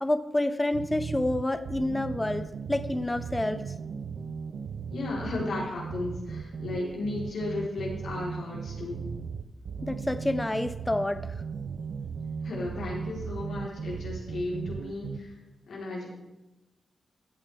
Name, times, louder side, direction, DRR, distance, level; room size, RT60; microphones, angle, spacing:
voice 1, 0.0-3.6 9.8-11.2, left 1 dB, 15° left, 12 dB, 0.7 m, -28 dB
sound 1, 0.7-15.2, right 6 dB, 85° right, 0.6 m, -37 dB
voice 2, 4.9-9.1 12.4-15.3 15.7-16.1, left 2 dB, 80° left, -4 dB, 3.7 m, -34 dB
15.0 x 8.8 x 3.5 m, 0.97 s
cardioid pair, 65°, 0 cm